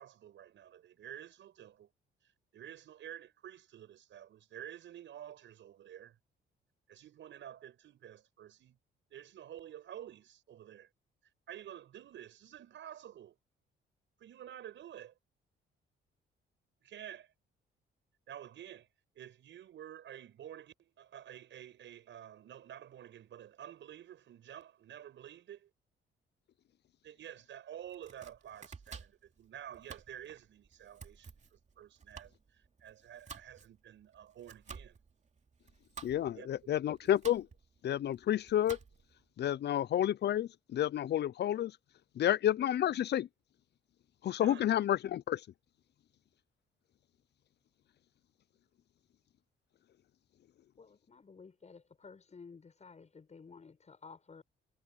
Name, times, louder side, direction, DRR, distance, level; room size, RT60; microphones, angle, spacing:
voice 1, 0.0-1.9 2.5-6.2 6.9-8.8 9.1-10.9 11.5-13.4 14.2-15.1 16.8-17.3 18.3-18.9 19.2-25.7 27.0-35.0 36.4-37.1 44.4-44.7, right 10 dB, 70° right, 7.0 m, -50 dB
Domestic sounds home sounds, 27.8-39.2, right 5 dB, 35° right, 2.7 m, -53 dB
voice 2, 36.0-37.5 37.8-38.8 39.4-41.7 42.2-43.3 44.2-45.4, left 11 dB, 60° left, 0.6 m, -30 dB
voice 3, 50.8-54.4, left 5 dB, 35° left, 7.1 m, -54 dB
cardioid pair, 90°, 20 cm